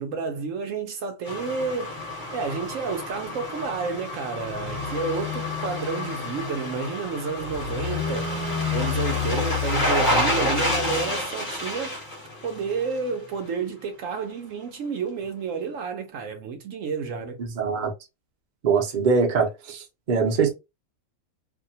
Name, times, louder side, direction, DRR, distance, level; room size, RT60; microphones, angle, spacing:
voice 1, 0.0-2.0 2.3-8.4 8.7-12.0 12.4-17.4, right 5 dB, 70° right, 0.9 m, -30 dB
sound 1, 1.3-13.1 13.5-13.6, left 2 dB, 35° left, 1.0 m, -28 dB
voice 2, 17.6-17.9 18.6-20.5, right 5 dB, 45° right, 0.6 m, -23 dB
2.6 x 2.2 x 2.7 m
omnidirectional pair, 1.6 m